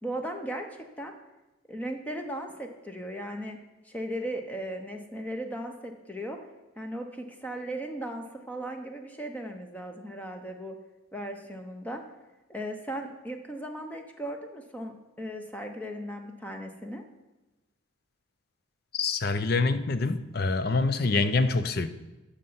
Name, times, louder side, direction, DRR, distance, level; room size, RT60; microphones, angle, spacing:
voice 1, 0.0-1.1 1.7-6.4 6.8-10.8 11.1-12.0 12.5-17.0, right 1 dB, 10° left, 4 dB, 0.8 m, -37 dB
voice 2, 18.9-21.9, left 3 dB, 50° left, 11 dB, 0.6 m, -26 dB
13.0 x 6.8 x 5.7 m, 1.1 s
head